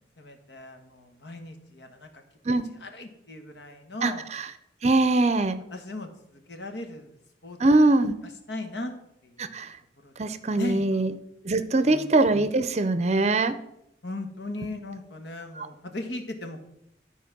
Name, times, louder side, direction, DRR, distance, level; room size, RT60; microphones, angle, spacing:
voice 1, 0.2-2.1 2.8-4.2 5.7-6.1 6.5-7.1 7.4-7.6 8.5-8.9 9.2-9.6 10.0-10.1 10.5-11.0 11.8-12.0 14.0-16.7, left 2 dB, 75° left, 5 dB, 1.4 m, -37 dB
voice 2, 4.0-4.5 4.8-5.6 7.6-8.2 9.4-9.7 10.2-11.1 11.4-13.5 15.6-15.7, right 2 dB, 35° right, 12 dB, 0.6 m, -22 dB
12.0 x 4.2 x 6.0 m, 0.80 s
head